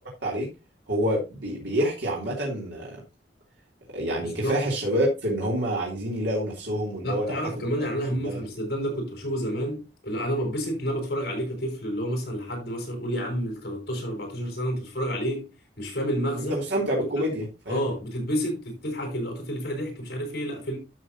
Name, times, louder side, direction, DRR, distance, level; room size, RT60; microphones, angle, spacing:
voice 1, 0.9-3.0 3.9-7.9 8.2-8.4 16.4-17.8, equal, 85° right, 3.2 m, -27 dB
voice 2, 4.2-4.6 7.0-15.5 15.8-16.6 17.0-17.3 17.7-20.8, equal, 60° left, 5.3 m, -30 dB
12.0 x 6.7 x 2.9 m
head